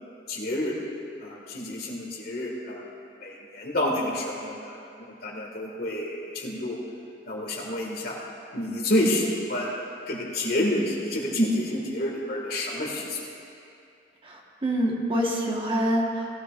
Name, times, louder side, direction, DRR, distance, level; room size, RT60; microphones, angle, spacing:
voice 1, 0.3-0.8 1.2-2.9 3.2-6.8 7.3-8.2 8.5-9.7 10.1-13.2, left 1 dB, 60° left, -2 dB, 2.0 m, -29 dB
voice 2, 14.2-16.3, equal, 30° right, -2 dB, 1.4 m, -26 dB
17.5 x 13.5 x 2.5 m, 2.5 s
head